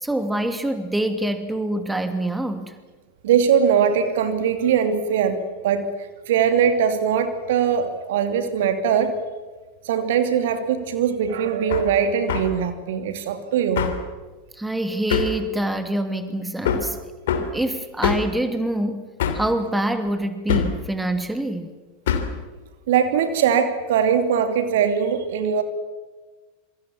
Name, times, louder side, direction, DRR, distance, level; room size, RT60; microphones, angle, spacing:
voice 1, 0.0-2.7 14.5-17.0 17.4-19.0 19.3-21.7, right 1 dB, 5° right, 8 dB, 2.7 m, -25 dB
voice 2, 3.2-9.1 9.8-13.9 22.9-25.6, right 7 dB, 60° right, 8 dB, 2.7 m, -21 dB
Hammer, 11.7-11.9 12.3-12.5 13.8-14.0 15.1-15.4 16.7-16.9 17.3-17.5 18.0-18.3 19.2-19.5 20.5-20.8 22.1-22.4, left 7 dB, 60° left, 3.1 m, -23 dB
27.0 x 24.5 x 7.3 m, 1.3 s
figure-of-eight pair, 85°, 0 cm